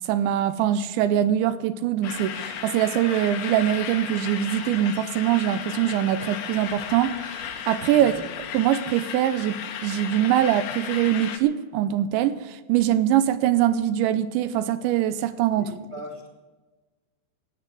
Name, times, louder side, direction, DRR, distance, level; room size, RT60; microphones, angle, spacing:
voice 1, 0.1-8.1 8.5-15.7, right 11 dB, 80° right, 2.8 m, -23 dB
sound 1, 2.0-11.4, left 8 dB, 65° left, 2.9 m, -35 dB
voice 2, 7.9-8.3 15.5-16.3, equal, 15° right, 1.2 m, -39 dB
14.5 x 9.6 x 8.2 m
omnidirectional pair, 5.7 m